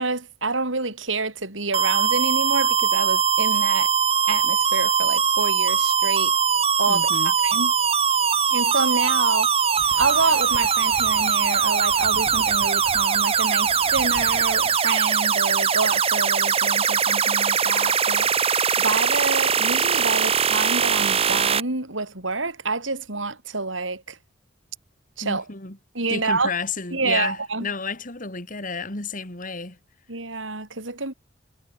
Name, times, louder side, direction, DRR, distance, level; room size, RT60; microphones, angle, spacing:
voice 1, 0.0-3.9 4.3-6.4 6.8-7.7 8.5-9.5 10.0-18.4 18.8-24.2 25.2-25.4 25.9-26.5 26.9-27.7 30.1-31.1, right 3 dB, 80° right, 4.8 m, -27 dB
sound 1, 1.7-21.6, right 6 dB, 30° right, 1.0 m, -21 dB
voice 2, 6.9-7.3 25.2-25.8 26.1-29.8, left 4 dB, 45° left, 3.3 m, -31 dB
sound 2, 9.8-14.8, right 1 dB, 10° right, 5.6 m, -42 dB
head